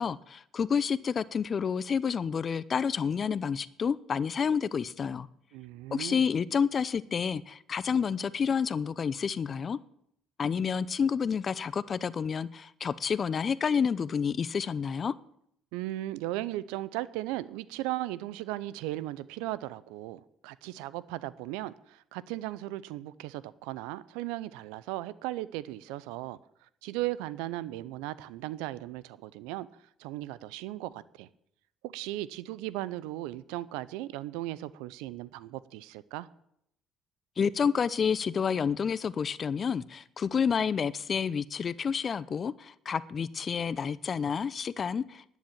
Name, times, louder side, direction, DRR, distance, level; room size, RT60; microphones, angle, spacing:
voice 1, 0.0-5.3 5.9-9.8 10.4-15.1 37.4-45.4, left 6 dB, 45° left, 0.7 m, -29 dB
voice 2, 5.5-6.2 15.7-29.7 30.0-31.3 31.8-36.3, right 16 dB, 80° right, 0.6 m, -37 dB
11.5 x 9.3 x 7.4 m
hypercardioid pair, 60°, 0 cm